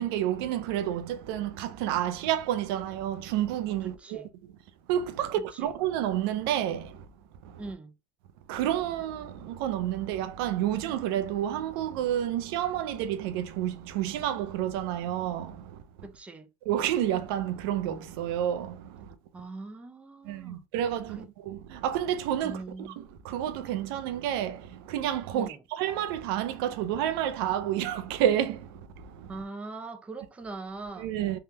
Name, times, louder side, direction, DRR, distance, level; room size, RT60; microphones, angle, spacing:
voice 1, 0.0-4.2 4.9-7.1 7.4-7.6 8.5-15.8 16.7-19.1 20.2-29.3 31.0-31.4, right 11 dB, 80° right, 0.5 m, -30 dB
voice 2, 3.8-4.3 5.4-5.7 7.6-7.9 16.0-16.5 19.3-20.6 21.1-21.3 22.4-23.0 25.3-25.6 29.3-31.1, right 3 dB, 10° right, 0.4 m, -41 dB
3.5 x 2.2 x 2.8 m
supercardioid pair, 130°, 13 cm